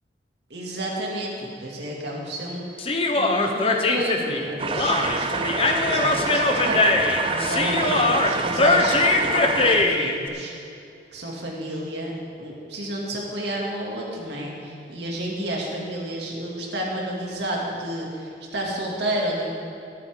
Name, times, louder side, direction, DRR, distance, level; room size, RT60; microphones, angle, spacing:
voice 1, 0.5-6.8 7.3-10.5 11.1-19.5, right 1 dB, 70° right, -2 dB, 2.5 m, -31 dB
Human voice, 2.8-10.1, left 2 dB, 30° left, 0.8 m, -21 dB
sound 1, 4.6-9.8, right 4 dB, 30° right, 0.5 m, -27 dB
22.0 x 8.7 x 3.8 m, 2.6 s
head